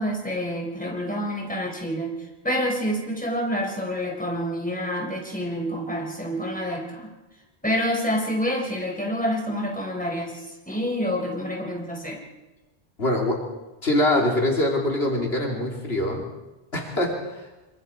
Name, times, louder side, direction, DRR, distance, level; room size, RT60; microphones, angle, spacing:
voice 1, 0.0-7.1 7.6-12.2, equal, 5° left, 0 dB, 4.6 m, -28 dB
voice 2, 13.0-13.4 13.8-16.3 16.7-17.5, left 1 dB, 70° left, 0 dB, 3.3 m, -23 dB
25.5 x 25.0 x 4.5 m, 1.1 s
omnidirectional pair, 1.1 m